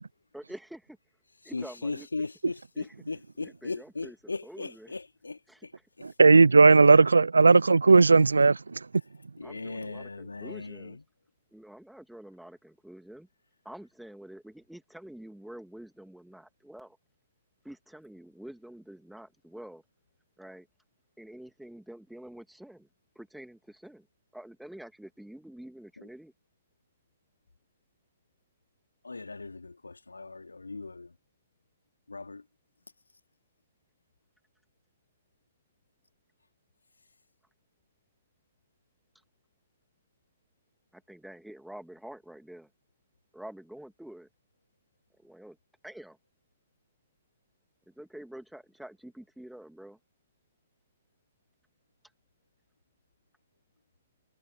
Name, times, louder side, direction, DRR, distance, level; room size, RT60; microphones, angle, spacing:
voice 1, 0.3-1.0 1.4-2.1 2.8-2.9 3.4-4.9 5.5-5.7 9.4-11.0 11.5-13.3 13.6-17.0 17.6-19.8 20.4-20.7 21.2-22.9 23.1-24.1 24.3-26.3 40.9-42.7 43.3-44.3 45.2-45.6 45.8-46.2 47.9-50.0, right 1 dB, ahead, 2.5 m, -47 dB
voice 2, 1.4-5.7 6.0-6.1 9.4-11.0 26.0-26.1 29.0-31.1 32.1-32.4, left 3 dB, 80° left, 3.1 m, -38 dB
voice 3, 6.0-8.8, right 4 dB, 75° right, 0.5 m, -17 dB
figure-of-eight pair, 120°, 0 cm